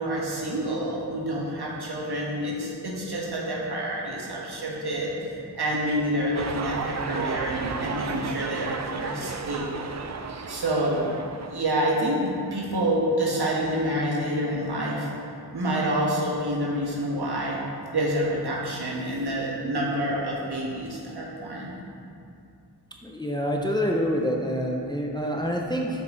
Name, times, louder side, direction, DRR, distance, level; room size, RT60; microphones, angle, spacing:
voice 1, 0.0-5.1 5.5-9.8 10.5-11.1 11.5-15.1 15.5-17.6 17.9-21.7, right 1 dB, 70° right, -4 dB, 1.4 m, -27 dB
sound 1, 6.3-11.6, right 5 dB, 45° right, 0.4 m, -33 dB
voice 2, 23.2-25.9, equal, 10° left, 0 dB, 0.5 m, -26 dB
5.9 x 5.3 x 3.8 m, 2.5 s
wide cardioid pair, 85°, 41 cm